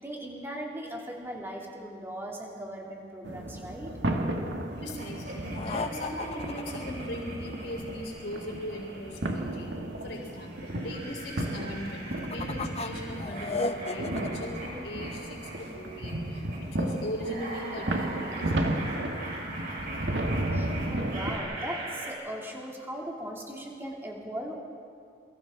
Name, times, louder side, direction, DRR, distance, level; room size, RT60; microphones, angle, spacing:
voice 1, 0.0-3.9 20.5-24.6, right 1 dB, 15° right, -2 dB, 3.1 m, -38 dB
sound 1, 3.2-21.4, right 1 dB, 75° right, 1.8 m, -34 dB
voice 2, 4.8-18.8, left 1 dB, 70° left, -1 dB, 4.7 m, -39 dB
sound 2, 5.0-9.7 10.2-22.1, right 2 dB, 55° right, 5.5 m, -42 dB
sound 3, 5.5-7.8 11.9-14.5, left 3 dB, 35° left, 0.8 m, -34 dB
28.0 x 23.5 x 4.0 m, 2.3 s
head